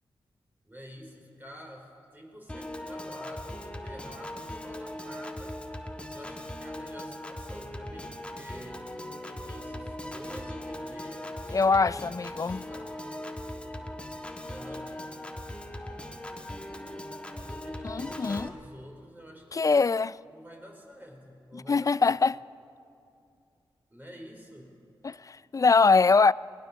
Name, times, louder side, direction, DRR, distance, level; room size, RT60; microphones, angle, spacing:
voice 1, 0.6-8.9 9.2-12.1 12.4-13.0 14.4-15.0 17.4-19.7 20.3-22.2 23.9-24.8, equal, 20° right, 5.1 m, -48 dB
Piano / Organ, 2.5-18.5, left 1 dB, 10° left, 1.8 m, -39 dB
voice 2, 11.5-12.7 17.8-18.5 19.5-20.2 21.5-22.4 25.0-26.3, left 4 dB, 35° left, 0.4 m, -23 dB
20.0 x 19.0 x 7.1 m
cardioid pair, 45°, 9 cm